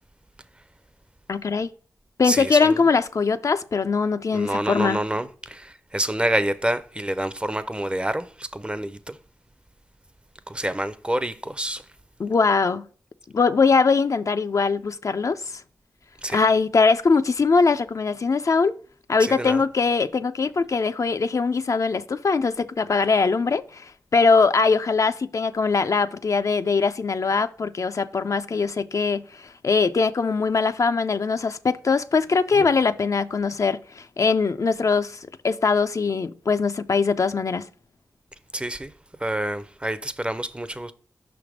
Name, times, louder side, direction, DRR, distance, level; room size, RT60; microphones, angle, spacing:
voice 1, 1.3-1.7 2.2-5.0 12.2-12.8 13.3-15.6 16.3-18.8 19.1-37.7, left 4 dB, 50° left, 0.3 m, -22 dB
voice 2, 2.2-2.8 4.3-9.2 10.5-11.8 16.2-16.4 19.2-19.6 32.5-32.7 38.5-38.9 39.2-40.9, right 1 dB, 15° right, 0.5 m, -27 dB
5.7 x 3.4 x 4.9 m
cardioid pair, 40°, 7 cm